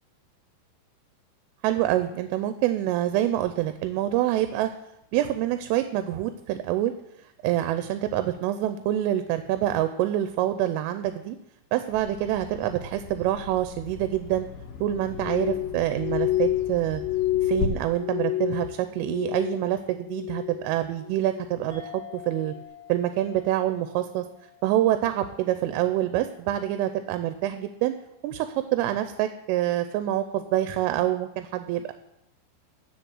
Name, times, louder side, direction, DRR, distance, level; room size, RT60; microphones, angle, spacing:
voice 1, 1.6-4.7 5.1-6.9 7.4-11.4 11.7-14.5 14.8-17.0 17.4-22.5 22.9-24.3 24.6-27.9 28.2-31.9, right 13 dB, 85° right, 10 dB, 3.1 m, -26 dB
Bird vocalization bird call bird song, 11.9-17.6, left 6 dB, 75° left, 1.9 m, -39 dB
Glass, 15.1-19.7 20.0-20.7 21.1-21.6 22.2-22.5, left 14 dB, 55° left, 3.2 m, -29 dB
sound 1, 21.7-26.6, left 9 dB, 30° right, 3.5 m, -48 dB
7.8 x 6.7 x 7.6 m, 0.84 s
omnidirectional pair, 5.7 m